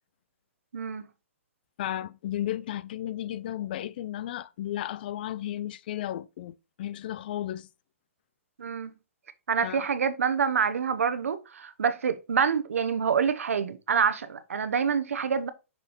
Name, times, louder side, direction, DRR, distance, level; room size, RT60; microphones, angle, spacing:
voice 1, 0.7-1.0 8.6-8.9 9.5-15.5, right 6 dB, 90° right, 0.8 m, -26 dB
voice 2, 1.8-7.7 9.6-9.9, left 12 dB, 45° left, 0.3 m, -34 dB
6.0 x 5.6 x 3.0 m
hypercardioid pair, 155°, 7 cm